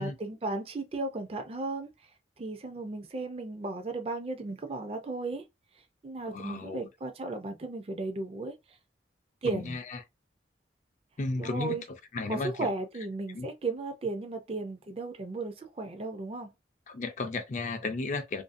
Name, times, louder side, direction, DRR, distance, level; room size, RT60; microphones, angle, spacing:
voice 1, 0.0-2.1 2.4-5.4 6.0-8.8 9.4-9.8 11.4-11.8 12.3-16.5, right 3 dB, 35° right, 0.4 m, -35 dB
voice 2, 6.3-6.9 9.5-10.0 11.2-12.7 13.3-13.5 16.9-18.4, left 3 dB, 45° left, 0.4 m, -34 dB
2.6 x 2.2 x 2.5 m
head